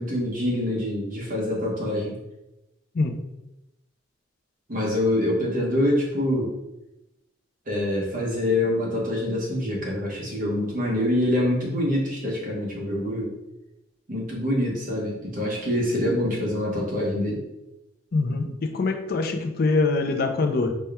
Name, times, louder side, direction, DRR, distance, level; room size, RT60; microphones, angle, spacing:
voice 1, 0.0-2.2 4.7-6.5 7.7-13.3 14.1-17.4, left 1 dB, 45° right, -2 dB, 1.0 m, -25 dB
voice 2, 18.1-20.7, left 3 dB, 50° left, 5 dB, 0.4 m, -24 dB
4.2 x 2.3 x 3.4 m, 0.93 s
head